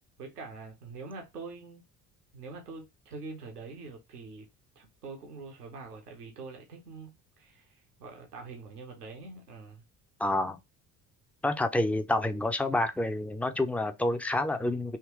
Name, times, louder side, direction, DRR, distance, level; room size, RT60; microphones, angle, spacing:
voice 1, 0.2-1.8 2.3-4.5 4.8-9.8, right 4 dB, 85° right, 0.9 m, -44 dB
voice 2, 10.2-10.6 11.4-15.0, left 2 dB, 5° left, 0.4 m, -28 dB
3.6 x 2.9 x 3.0 m
figure-of-eight pair, 50°, 45 cm